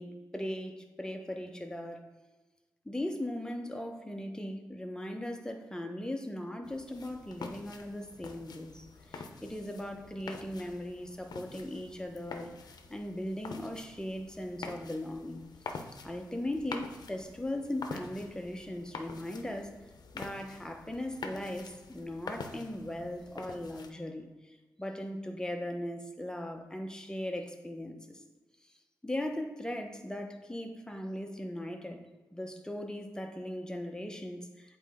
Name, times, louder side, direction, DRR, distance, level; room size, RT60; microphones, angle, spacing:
voice 1, 0.0-2.1 2.8-12.5 12.9-15.4 15.7-15.8 16.0-19.8 20.1-28.2 29.0-32.0 32.3-34.8, left 1 dB, 10° left, 4 dB, 1.0 m, -38 dB
sound 1, 6.6-23.9, left 4 dB, 70° left, 0.7 m, -46 dB
8.0 x 4.3 x 3.7 m, 1.2 s
cardioid pair, 50°, 7 cm